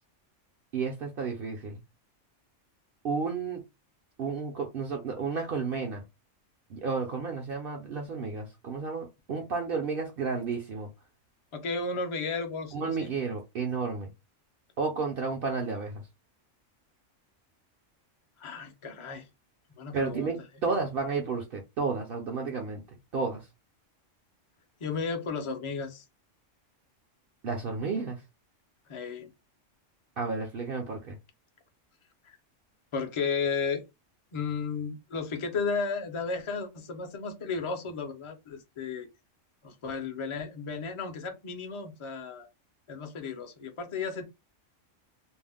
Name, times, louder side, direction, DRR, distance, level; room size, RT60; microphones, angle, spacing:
voice 1, 0.7-1.8 3.0-3.6 4.2-6.0 6.7-10.9 12.7-14.1 14.8-16.0 19.9-22.8 23.1-23.4 27.4-28.2 30.2-31.2, right 4 dB, 60° right, 0.7 m, -32 dB
voice 2, 11.5-13.1 18.4-19.3 19.8-20.3 24.8-26.0 28.9-29.3 32.2-32.4 32.9-33.8 34.3-39.1 39.6-42.5 42.9-44.2, left 5 dB, 40° left, 0.4 m, -34 dB
2.5 x 2.0 x 3.4 m
omnidirectional pair, 1.3 m